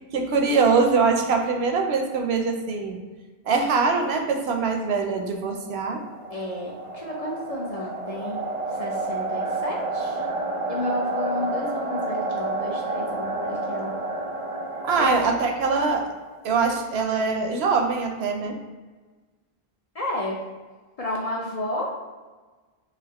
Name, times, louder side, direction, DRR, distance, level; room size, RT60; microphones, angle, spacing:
voice 1, 0.1-3.0 3.5-6.0 14.9-16.0 16.4-18.6, right 4 dB, 80° right, 3 dB, 0.8 m, -23 dB
sound 1, 5.5-16.4, right 2 dB, 50° right, 0.4 m, -30 dB
voice 2, 6.3-8.4 8.8-10.2 10.7-13.9 14.9-15.3 19.9-20.4 21.0-22.0, left 1 dB, 45° left, -2 dB, 0.5 m, -31 dB
4.1 x 2.5 x 2.9 m, 1.3 s
omnidirectional pair, 1.1 m